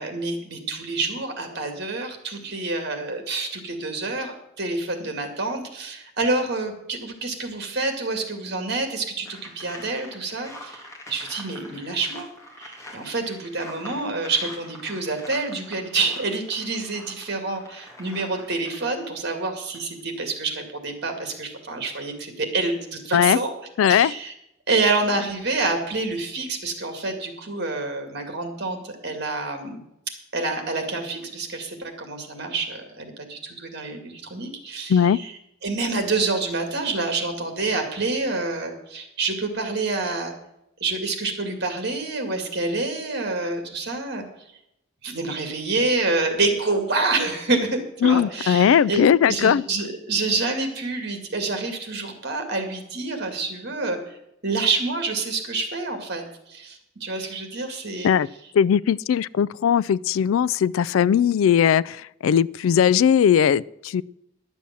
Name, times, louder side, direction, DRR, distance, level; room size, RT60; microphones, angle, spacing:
voice 1, 0.0-12.3 12.6-23.5 23.9-24.3 24.7-29.8 30.3-35.3 35.6-40.3 40.8-44.3 45.0-54.2 54.4-56.2 56.5-58.1, right 3 dB, 55° right, 6 dB, 2.2 m, -27 dB
sound 1, 9.2-19.1 19.6-19.8, left 1 dB, 15° left, 2.1 m, -44 dB
voice 2, 23.8-24.1 34.9-35.2 48.0-49.6 58.0-58.3 58.5-64.0, left 8 dB, 80° left, 22 dB, 0.3 m, -19 dB
11.5 x 7.1 x 7.5 m, 0.82 s
head